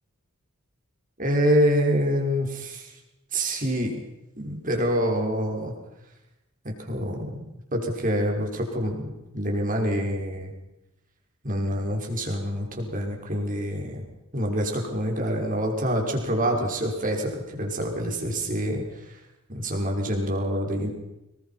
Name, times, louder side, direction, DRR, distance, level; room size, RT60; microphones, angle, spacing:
voice 1, 1.2-2.9 3.3-4.0 4.4-5.7 6.6-9.1 9.3-10.5 11.4-14.0 14.3-19.2 19.5-20.9, equal, 40° right, 2 dB, 5.8 m, -26 dB
26.0 x 22.5 x 5.9 m, 0.93 s
head